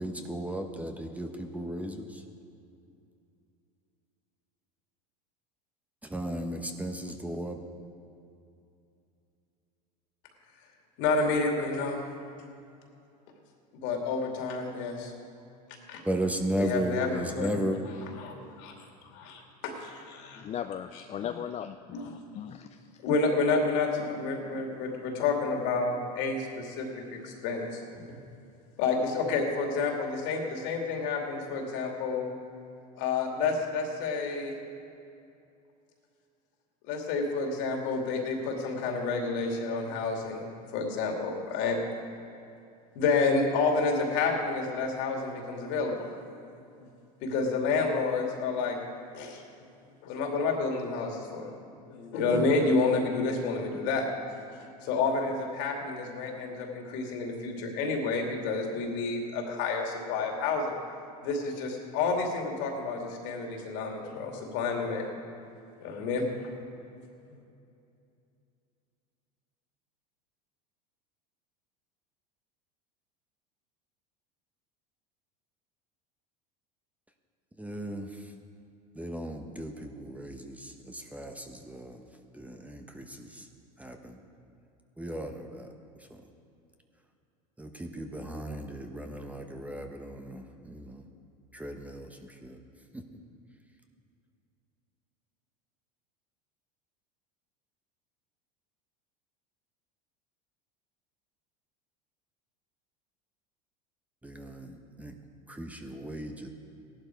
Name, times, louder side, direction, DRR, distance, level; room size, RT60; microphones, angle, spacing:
voice 1, 0.0-2.2 6.1-7.7 16.0-17.8 77.6-78.3 78.9-82.0 82.3-83.5 83.8-84.2 85.0-85.7 86.1-86.2 87.6-91.1 91.5-92.6 92.9-93.0 104.2-105.1 105.5-106.5, right 1 dB, 5° right, 4 dB, 1.0 m, -35 dB
voice 2, 11.0-12.0 13.8-15.1 15.9-16.0 16.6-17.8 18.2-18.7 19.1-20.4 21.9-22.4 23.0-27.8 28.1-28.2 28.8-32.3 33.0-34.6 36.9-41.8 42.9-46.2 46.8-46.9 47.2-48.8 49.1-49.4 50.0-51.5 51.9-54.4 54.8-60.8 61.2-65.1 65.8-66.3, left 4 dB, 65° left, 1 dB, 2.6 m, -29 dB
voice 3, 20.3-22.8, left 9 dB, 30° left, 7 dB, 0.5 m, -38 dB
15.5 x 11.5 x 4.6 m, 2.6 s
hypercardioid pair, 95°, 21 cm